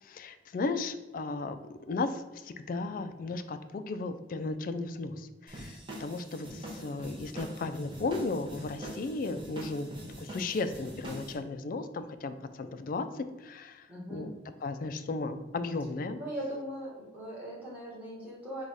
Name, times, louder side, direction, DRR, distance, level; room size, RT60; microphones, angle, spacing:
voice 1, 0.0-9.9 10.2-14.4 14.6-16.2, left 3 dB, 50° left, 10 dB, 0.3 m, -35 dB
sound 1, 5.5-11.3, equal, 30° right, 0.9 m, -43 dB
voice 2, 13.9-14.2 16.2-18.6, right 1 dB, 10° right, -5 dB, 1.3 m, -39 dB
4.7 x 2.3 x 4.0 m, 1.2 s
head